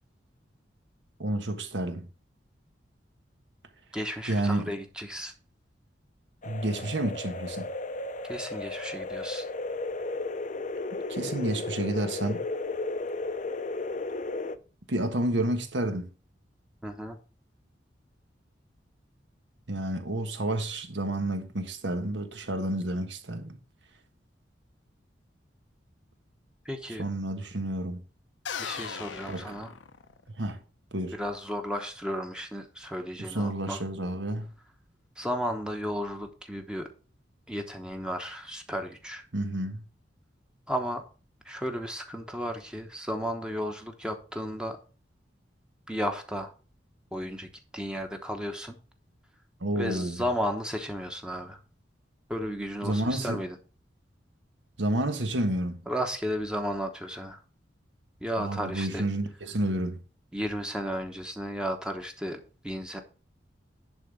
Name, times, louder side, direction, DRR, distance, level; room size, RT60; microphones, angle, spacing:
voice 1, 1.2-2.1 4.3-4.7 6.4-7.7 11.1-12.4 14.9-16.1 19.7-23.6 27.0-28.0 29.3-29.5 30.4-30.6 30.9-31.2 33.3-34.5 39.3-39.8 49.6-50.2 52.8-53.4 54.8-55.8 58.4-60.0, right 1 dB, 75° right, 1.5 m, -30 dB
voice 2, 3.9-5.3 8.3-9.5 16.8-17.2 26.6-27.0 28.6-29.7 31.1-33.8 35.2-36.9 37.5-39.3 40.7-41.0 41.4-44.8 45.9-46.5 47.1-48.8 49.7-51.6 52.3-53.6 55.9-57.4 58.2-59.1 60.3-63.0, equal, 5° right, 1.0 m, -34 dB
sound 1, 6.4-14.6, left 2 dB, 40° left, 0.6 m, -34 dB
sound 2, 28.5-30.4, left 7 dB, 85° left, 0.7 m, -38 dB
10.5 x 3.9 x 6.6 m
head